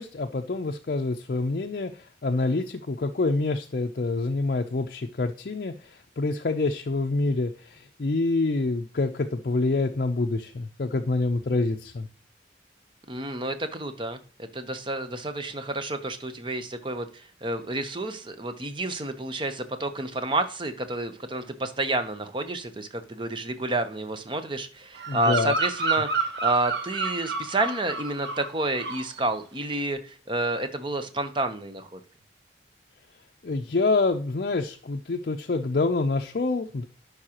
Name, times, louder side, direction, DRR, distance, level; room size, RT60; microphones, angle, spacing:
voice 1, 0.0-12.1 25.1-25.5 33.4-36.9, left 3 dB, 50° left, 4 dB, 0.5 m, -27 dB
voice 2, 13.1-32.0, right 2 dB, 25° right, 9 dB, 0.7 m, -30 dB
Bird vocalization bird call bird song, 24.9-28.5 28.7-29.2, right 4 dB, 65° right, 0.9 m, -30 dB
11.0 x 4.8 x 2.9 m, 0.42 s
head